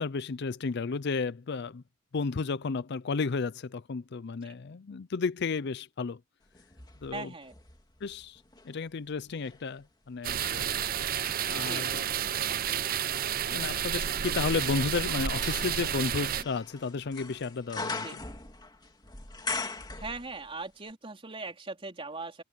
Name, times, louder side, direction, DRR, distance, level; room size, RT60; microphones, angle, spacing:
voice 1, 0.0-1.8 2.1-6.2 7.0-7.3 8.0-10.7 11.5-12.0 12.4-12.6 13.5-18.2, left 4 dB, 55° left, 0.5 m, -33 dB
sound 1, 6.5-8.7 9.3-20.6 20.9-21.0, left 3 dB, 20° left, 2.5 m, -42 dB
voice 2, 7.1-7.6 11.7-11.9 18.0-18.1 20.0-22.4, right 3 dB, 30° right, 3.7 m, -39 dB
sound 2, 10.2-16.4, right 9 dB, 45° right, 0.6 m, -31 dB
head